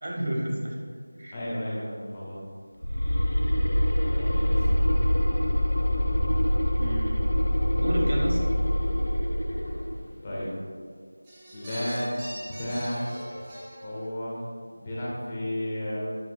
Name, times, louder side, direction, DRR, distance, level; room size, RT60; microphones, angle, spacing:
voice 1, 0.0-0.8 1.2-1.3 6.8-7.3 7.8-8.4, right 1 dB, 45° right, -2 dB, 2.1 m, -30 dB
voice 2, 1.3-2.4 4.1-4.7 10.2-10.5 11.5-12.2 12.6-13.0 13.3-13.4 13.8-14.4 14.8-16.1, left 1 dB, 20° left, -7 dB, 1.8 m, -32 dB
sound 1, 2.8-10.1, equal, 65° left, 0.9 m, -24 dB
sound 2, 11.2-14.1, equal, 10° right, 1.6 m, -40 dB
9.4 x 9.0 x 2.5 m, 2.1 s
figure-of-eight pair, 170°, 0 cm